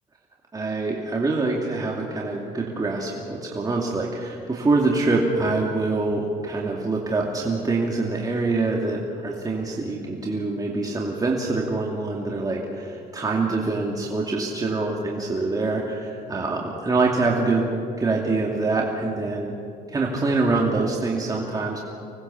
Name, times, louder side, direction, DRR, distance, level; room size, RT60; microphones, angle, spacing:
voice 1, 0.5-17.7 18.0-19.5 19.9-21.8, right 3 dB, 20° right, -2 dB, 2.6 m, -25 dB
25.5 x 19.5 x 7.2 m, 2.5 s
cardioid pair, 110°, 17 cm